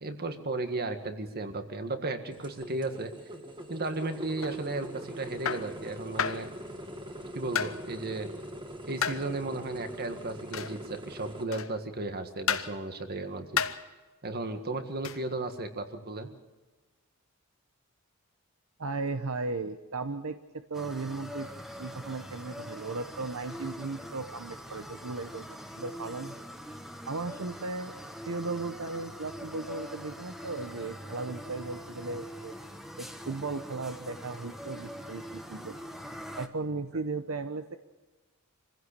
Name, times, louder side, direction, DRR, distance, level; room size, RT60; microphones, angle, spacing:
voice 1, 0.0-3.1 3.7-6.5 7.3-8.3 8.8-13.6 14.2-16.3, right 2 dB, 45° right, 7 dB, 1.8 m, -34 dB
sound 1, 2.3-11.4, equal, 25° right, 1.9 m, -43 dB
sound 2, 4.4-4.6 5.5-5.7 6.2-6.5 7.6-7.8 9.0-9.3 10.5-10.8 11.5-11.8 12.5-12.8 13.6-13.9 15.0-15.3, left 7 dB, 65° left, 0.9 m, -31 dB
voice 2, 18.8-21.5 21.8-26.4 27.1-28.0 28.2-32.5 33.0-35.8 36.4-37.8, right 3 dB, 75° right, 8 dB, 0.9 m, -36 dB
sound 3, 20.7-36.5, equal, ahead, 1.4 m, -43 dB
25.5 x 16.0 x 6.8 m, 1.2 s
head